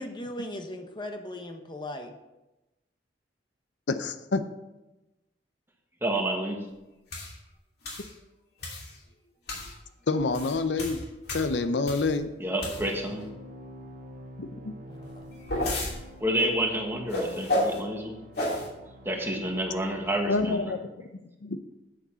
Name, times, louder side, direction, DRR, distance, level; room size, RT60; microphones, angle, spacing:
voice 1, 0.0-2.1 14.9-15.3, left 1 dB, 25° left, 5 dB, 0.9 m, -38 dB
voice 2, 3.9-4.4 10.1-11.0 11.3-12.3 14.4-14.7 20.3-21.1 21.4-21.6, left 3 dB, 75° left, 10 dB, 0.6 m, -27 dB
voice 3, 6.0-6.6 12.4-13.2 16.2-18.2 19.0-20.7, right 1 dB, 15° right, 1 dB, 1.4 m, -29 dB
sound 1, 7.1-7.3 7.8-8.1 8.6-8.9 9.5-9.7 10.2-12.2 12.6-13.1 15.0-15.9 17.1-17.8 18.3-18.7, left 1 dB, 60° left, 2.8 m, -31 dB
sound 2, 12.6-20.4, equal, 50° right, 0.8 m, -47 dB
8.6 x 6.9 x 5.6 m, 1.0 s
head